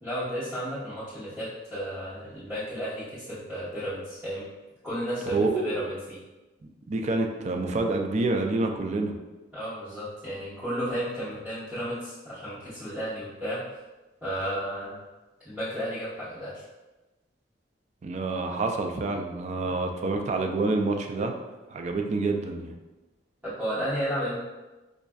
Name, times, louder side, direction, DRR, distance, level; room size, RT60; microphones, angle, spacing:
voice 1, 0.0-4.5 4.8-6.2 9.5-13.6 14.2-15.0 15.4-16.6 19.6-19.8 23.4-24.4, equal, 5° right, -15 dB, 1.0 m, -33 dB
voice 2, 5.3-5.7 6.9-9.1 18.0-21.3 21.7-22.8, right 3 dB, 40° right, 3 dB, 0.3 m, -27 dB
5.1 x 2.4 x 2.3 m, 1.1 s
head